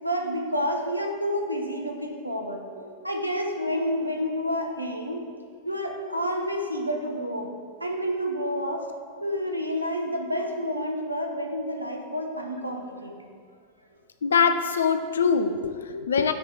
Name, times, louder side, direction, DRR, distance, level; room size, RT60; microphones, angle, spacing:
voice 1, 0.0-5.2 5.6-7.5 7.8-8.8 9.2-13.3, equal, 90° right, 2 dB, 0.7 m, -29 dB
voice 2, 14.2-16.3, left 6 dB, 70° left, 9 dB, 0.4 m, -23 dB
9.1 x 3.2 x 4.5 m, 2.1 s
figure-of-eight pair, 90°, 0 cm